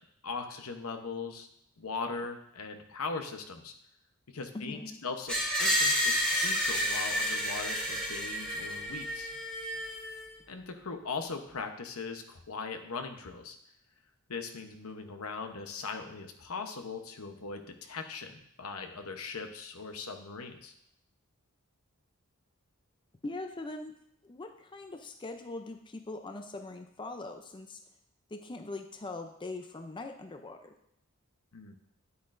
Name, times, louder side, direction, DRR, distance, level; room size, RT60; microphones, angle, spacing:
voice 1, 0.2-1.5 1.8-3.7 4.3-9.3 10.5-13.6 14.3-20.7 31.5-31.8, left 4 dB, 75° left, 6 dB, 0.9 m, -40 dB
voice 2, 4.5-5.0 23.2-23.9 24.2-27.8 28.3-30.7, left 2 dB, 20° left, 6 dB, 0.5 m, -41 dB
Screech, 5.3-10.2, equal, 5° left, 1.6 m, -30 dB
9.6 x 8.2 x 2.6 m, 0.74 s
head